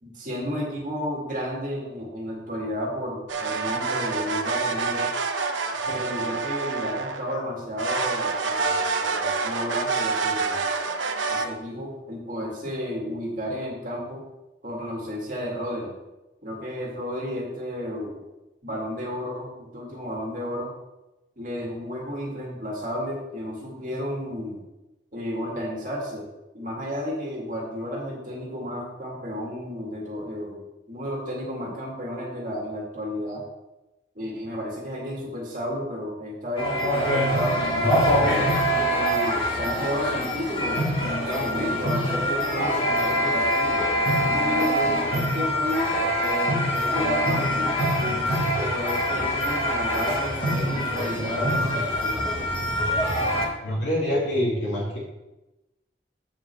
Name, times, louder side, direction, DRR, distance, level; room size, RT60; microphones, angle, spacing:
voice 1, 0.0-5.1 5.9-10.6 11.3-14.2 14.6-16.0 16.4-18.3 18.6-20.7 21.4-24.6 25.1-26.3 26.5-33.4 34.2-38.5 38.9-43.8 44.2-45.9 46.2-48.3 48.5-52.5, equal, 45° right, -4 dB, 2.0 m, -32 dB
sound 1, 3.3-7.4 7.8-11.5, right 4 dB, 80° right, 0.9 m, -27 dB
sound 2, 36.6-53.5, equal, 30° left, 1.7 m, -24 dB
voice 2, 53.6-55.0, equal, 70° left, -7 dB, 2.6 m, -25 dB
7.7 x 4.9 x 6.8 m, 1.0 s
head